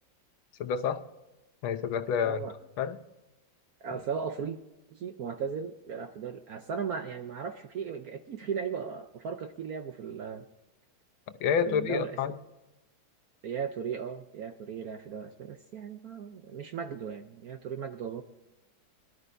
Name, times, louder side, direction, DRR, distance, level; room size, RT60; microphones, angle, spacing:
voice 1, 0.6-1.0 1.6-2.4 2.8-3.0 11.4-12.3, left 7 dB, 75° left, 8 dB, 1.6 m, -28 dB
voice 2, 2.2-2.5 3.8-4.6 4.9-10.5 11.6-12.2 13.4-18.2, right 6 dB, 65° right, 7 dB, 0.9 m, -37 dB
22.5 x 12.5 x 2.6 m, 0.98 s
omnidirectional pair, 2.2 m